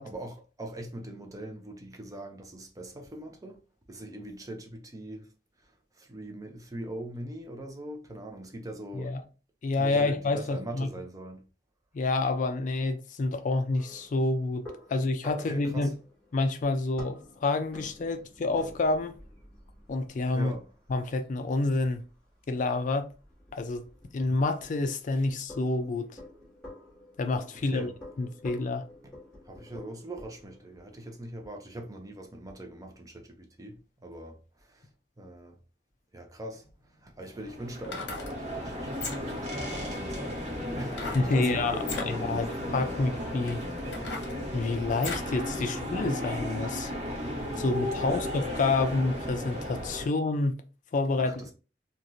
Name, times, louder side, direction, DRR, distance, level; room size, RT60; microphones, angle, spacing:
voice 1, 0.0-3.6 3.9-5.2 6.1-9.1 9.8-11.4 15.5-15.9 20.3-20.6 27.7-27.9 29.5-33.7 34.0-34.3 35.2-35.5 36.1-36.6 37.0-42.4 48.0-48.2 51.2-51.5, right 1 dB, 20° right, 0.5 m, -41 dB
voice 2, 9.6-10.9 11.9-16.0 16.3-19.1 19.9-20.6 20.9-22.0 22.5-23.1 23.5-23.8 24.1-26.1 27.2-27.9 28.2-28.8 41.1-43.6 44.5-46.9 47.6-50.5 50.9-51.5, left 3 dB, 45° left, 0.4 m, -28 dB
sound 1, 13.7-31.3, left 1 dB, 5° left, 1.5 m, -50 dB
sound 2, 37.3-50.1, left 1 dB, 40° right, 0.9 m, -35 dB
sound 3, 37.8-38.3 38.9-39.4 40.9-41.3 41.8-42.1 42.8-42.9 43.5-45.3 45.8-45.9, left 4 dB, 85° left, 0.8 m, -38 dB
3.0 x 2.4 x 2.6 m
head